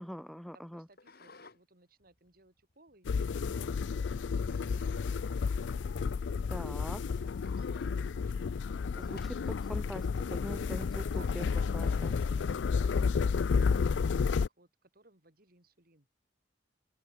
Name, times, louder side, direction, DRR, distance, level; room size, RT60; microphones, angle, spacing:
voice 1, 0.0-0.9 6.5-7.0 8.9-11.5 11.7-12.2, equal, ahead, 0.4 m, -42 dB
voice 2, 0.7-9.3 10.4-16.1, right 2 dB, 55° right, 3.9 m, -62 dB
sound 1, 0.9-1.6 2.0-3.4 4.4-5.2 5.5-5.6 6.3-6.4 6.8-6.9 7.2-7.9 9.0-9.6 10.6-11.1 11.8-12.4, left 4 dB, 55° left, 2.9 m, -56 dB
sound 2, 3.1-14.5, left 5 dB, 80° left, 0.4 m, -31 dB
open air
head